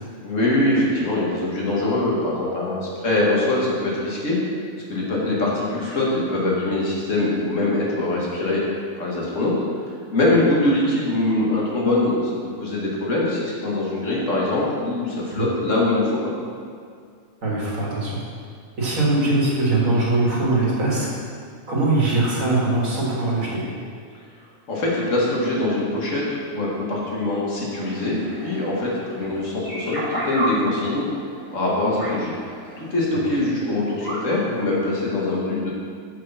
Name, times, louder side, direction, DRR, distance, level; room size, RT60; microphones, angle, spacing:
voice 1, 0.2-4.4 4.9-8.6 9.0-9.5 9.8-12.2 12.6-16.3 24.7-31.1 31.5-32.4 32.8-35.7, left 2 dB, 70° left, -4 dB, 2.0 m, -23 dB
voice 2, 17.4-18.2 18.8-21.1 21.7-23.7, right 2 dB, 80° right, -5 dB, 2.2 m, -21 dB
sound 1, 27.7-34.9, right 1 dB, 35° left, 2.4 m, -33 dB
6.3 x 6.1 x 5.6 m, 2.2 s
omnidirectional pair, 1.4 m